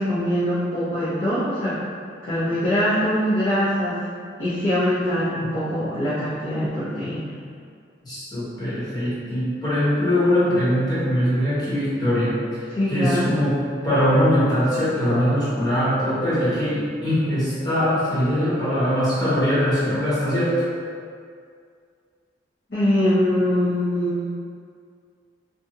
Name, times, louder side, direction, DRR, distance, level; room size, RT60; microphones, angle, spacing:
voice 1, 0.0-1.8 2.2-4.0 4.4-7.3 12.7-13.3 22.7-24.3, equal, 75° left, -14 dB, 0.8 m, -23 dB
voice 2, 8.0-13.6 13.8-20.7, equal, 25° left, -12 dB, 1.0 m, -22 dB
2.6 x 2.3 x 2.7 m, 2.2 s
head